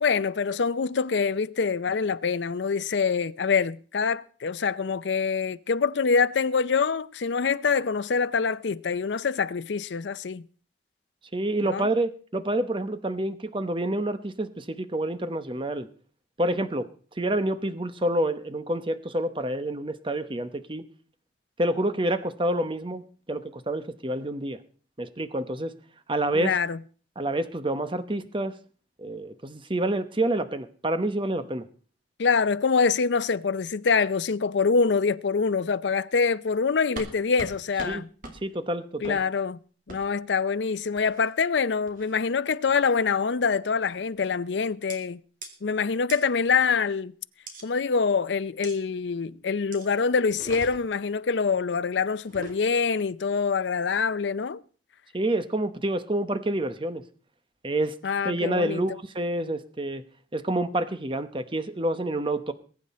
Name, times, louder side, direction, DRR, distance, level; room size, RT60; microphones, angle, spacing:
voice 1, 0.0-10.4 11.6-11.9 26.3-26.8 32.2-38.1 39.0-39.6 39.9-45.2 45.6-47.1 47.6-54.6 58.0-58.8, left 5 dB, 80° left, 0.5 m, -25 dB
voice 2, 11.3-15.9 16.4-16.9 17.2-20.8 21.6-23.0 23.3-24.6 25.0-25.7 26.1-26.6 27.2-28.5 29.0-31.6 37.8-38.0 38.4-39.2 55.1-57.0 57.6-57.9 58.2-60.0 60.3-62.5, right 1 dB, 30° right, 0.9 m, -28 dB
sound 1, 37.0-37.1 37.4-37.5 37.8-37.9 38.2-38.4 39.0-39.2 39.9-40.0 41.0-41.3 41.9-42.2 42.7-43.0 43.8-44.1 44.9-45.0 45.4-45.5 46.1-46.2 47.5-47.6 48.6-48.8 49.7-49.9 50.3-51.0 52.2-52.6, right 2 dB, 50° right, 2.4 m, -41 dB
21.0 x 8.9 x 4.2 m
head